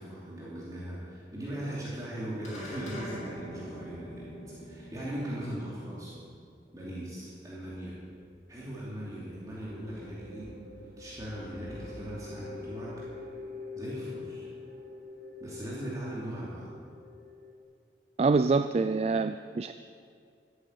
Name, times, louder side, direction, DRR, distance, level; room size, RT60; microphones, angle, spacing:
voice 1, 0.0-6.1 6.7-8.0 8.5-10.5 11.0-12.9 13.8-14.5 15.4-16.7, right 1 dB, 20° right, -8 dB, 2.8 m, -39 dB
sound 1, 2.4-7.1, equal, 40° left, 3.1 m, -45 dB
sound 2, 8.2-17.6, left 3 dB, 50° right, 2.4 m, -45 dB
voice 2, 18.2-19.7, right 4 dB, 35° right, 10 dB, 0.3 m, -25 dB
13.0 x 9.1 x 8.5 m, 2.3 s
head